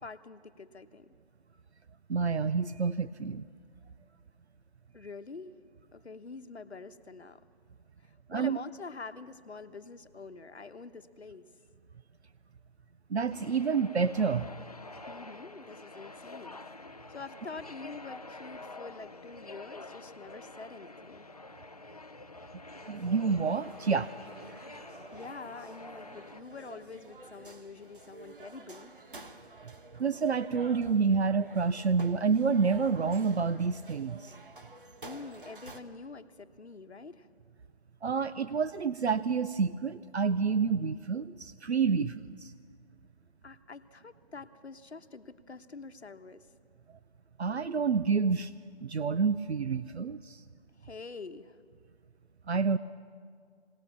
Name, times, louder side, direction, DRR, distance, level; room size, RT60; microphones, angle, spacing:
voice 1, 0.0-1.1 4.9-5.5 5.9-7.4 8.0-11.5 15.1-16.6 17.1-21.3 25.1-28.9 35.0-37.3 43.4-46.5 50.8-51.6, left 4 dB, 75° left, 10 dB, 1.1 m, -46 dB
voice 2, 2.1-3.5 8.3-8.6 13.1-14.5 22.9-24.1 30.0-34.4 38.0-42.5 47.4-48.5 48.8-50.4 52.5-52.8, right 5 dB, 75° right, 12 dB, 0.6 m, -28 dB
sound 1, 13.3-26.4, left 2 dB, 35° left, 0.5 m, -48 dB
sound 2, 22.7-35.8, right 2 dB, 50° right, 1.4 m, -51 dB
20.0 x 18.5 x 7.1 m, 2.1 s
figure-of-eight pair, 160°, 33 cm